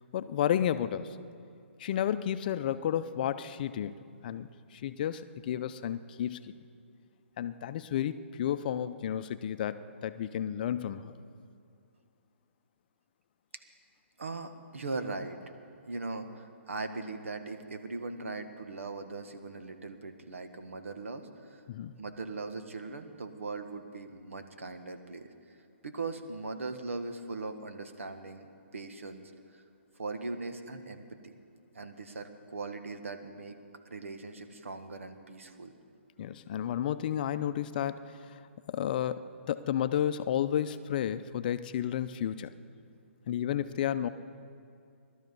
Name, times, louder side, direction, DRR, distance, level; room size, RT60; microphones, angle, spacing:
voice 1, 0.1-1.2 1.8-6.5 7.4-11.1 21.7-22.0 36.2-38.4 38.7-42.5 43.3-44.1, left 10 dB, 40° left, 12 dB, 0.6 m, -32 dB
voice 2, 14.2-15.5 15.9-21.6 22.0-25.3 25.8-29.6 30.0-31.4 31.7-33.6 33.8-35.7, right 3 dB, 80° right, 7 dB, 1.5 m, -40 dB
18.5 x 12.5 x 5.4 m, 2.5 s
hypercardioid pair, 145°, 7 cm